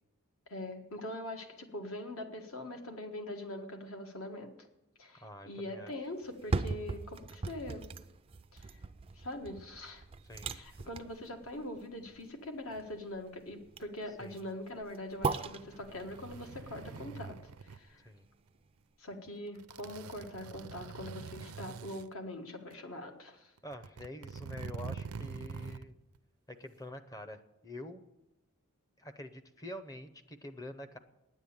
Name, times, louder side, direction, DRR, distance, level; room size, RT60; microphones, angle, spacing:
voice 1, 0.5-4.5 5.0-7.8 8.5-8.8 9.1-10.0 10.5-17.4 17.7-18.0 19.0-23.5, left 1 dB, 70° left, 4 dB, 1.6 m, -43 dB
voice 2, 5.2-5.9 10.2-10.8 14.2-14.4 18.0-18.3 23.6-25.9 26.5-28.0 29.0-31.0, left 1 dB, 15° left, 10 dB, 0.6 m, -46 dB
sound 1, 6.2-18.3 18.7-18.8, right 4 dB, 25° right, 0.3 m, -40 dB
sound 2, 15.4-17.8 19.1-19.3 19.6-22.1 22.7-22.8 23.6-25.9 26.1-26.2, right 5 dB, 80° right, 0.5 m, -45 dB
10.0 x 8.1 x 8.7 m, 0.93 s
head